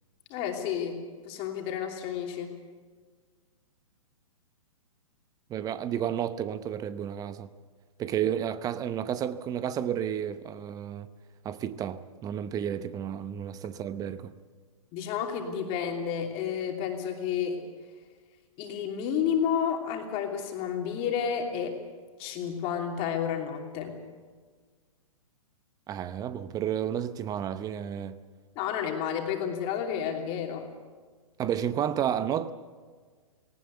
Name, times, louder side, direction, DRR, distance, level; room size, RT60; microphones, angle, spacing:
voice 1, 0.3-1.0 1.2-2.5 14.9-17.6 18.6-21.8 22.2-24.0 28.5-30.7, left 8 dB, 35° left, 3.0 m, -31 dB
voice 2, 5.5-7.5 8.0-11.1 11.4-14.3 25.9-28.2 31.4-32.5, right 9 dB, 20° right, 0.8 m, -31 dB
19.0 x 18.5 x 8.3 m
hypercardioid pair, 120°, 18 cm